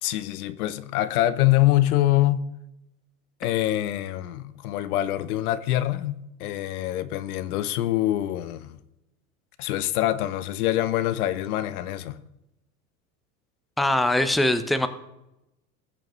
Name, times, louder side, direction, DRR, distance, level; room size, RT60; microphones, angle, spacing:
voice 1, 0.0-2.5 3.4-8.8 9.6-12.2, left 14 dB, 75° left, 0.9 m, -25 dB
voice 2, 13.8-14.9, left 1 dB, ahead, 0.8 m, -22 dB
20.5 x 6.9 x 3.1 m
hypercardioid pair, 100°, 45 cm